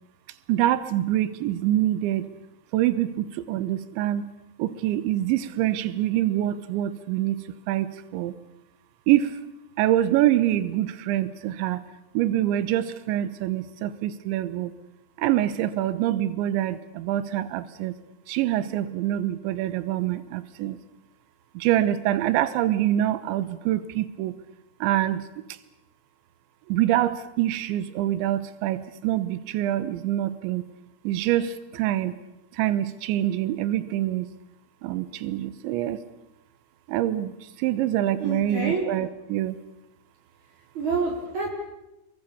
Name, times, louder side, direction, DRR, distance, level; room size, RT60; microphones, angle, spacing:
voice 1, 0.5-2.3 2.7-4.3 4.6-8.3 9.1-9.4 9.8-11.8 12.1-14.7 15.2-17.9 18.3-20.8 21.5-24.4 24.8-25.3 26.7-30.6 31.0-32.2 32.5-34.3 34.8-36.0 36.9-39.6, right 13 dB, 75° right, 14 dB, 3.4 m, -25 dB
voice 2, 38.2-38.8 40.8-41.5, right 4 dB, 40° right, 0 dB, 5.2 m, -27 dB
28.0 x 23.0 x 7.1 m, 0.89 s
omnidirectional pair, 5.5 m